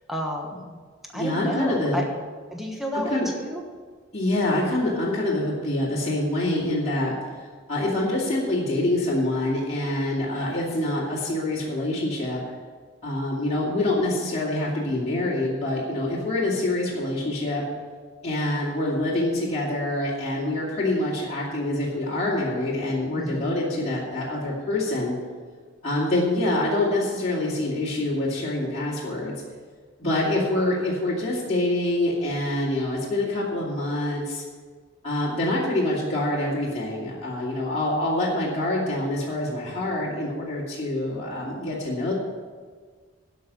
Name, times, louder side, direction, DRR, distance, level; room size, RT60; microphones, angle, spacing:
voice 1, 0.1-0.8 1.1-2.1 2.5-3.6 23.2-23.5 30.0-30.3, equal, ahead, 0 dB, 1.2 m, -31 dB
voice 2, 1.1-2.0 2.9-3.3 4.1-12.4 13.0-17.6 18.2-25.1 25.8-29.3 30.0-34.4 35.0-42.1, left 1 dB, 35° left, -7 dB, 2.6 m, -26 dB
12.5 x 5.6 x 8.5 m, 1.5 s
head